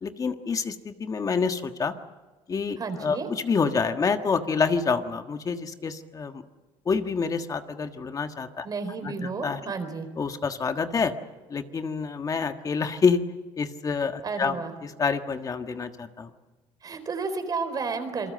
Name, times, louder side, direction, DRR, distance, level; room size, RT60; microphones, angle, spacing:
voice 1, 0.0-1.9 2.5-6.4 6.8-8.7 9.0-9.6 10.2-11.1 11.5-13.2 13.6-14.5 14.8-16.3, left 5 dB, 30° left, 7 dB, 1.5 m, -27 dB
voice 2, 2.8-3.3 8.6-10.1 14.2-14.7 16.8-18.3, right 4 dB, 35° right, 8 dB, 4.0 m, -32 dB
27.5 x 22.5 x 7.8 m, 1.2 s
cardioid pair, 120°, 11 cm